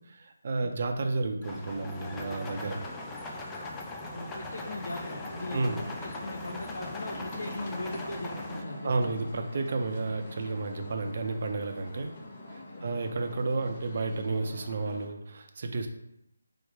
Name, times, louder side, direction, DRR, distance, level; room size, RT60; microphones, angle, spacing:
voice 1, 0.0-2.8 5.5-5.8 8.8-12.1 12.5-15.9, right 3 dB, 45° right, 5 dB, 0.6 m, -32 dB
sound 1, 1.4-8.6, left 2 dB, 10° left, 0.4 m, -40 dB
voice 2, 4.0-9.3 12.8-13.0, left 1 dB, 80° left, 0 dB, 0.6 m, -40 dB
sound 2, 4.9-15.1, left 2 dB, 30° left, 0.8 m, -44 dB
4.7 x 2.1 x 4.6 m, 0.80 s
figure-of-eight pair, 160°, 0 cm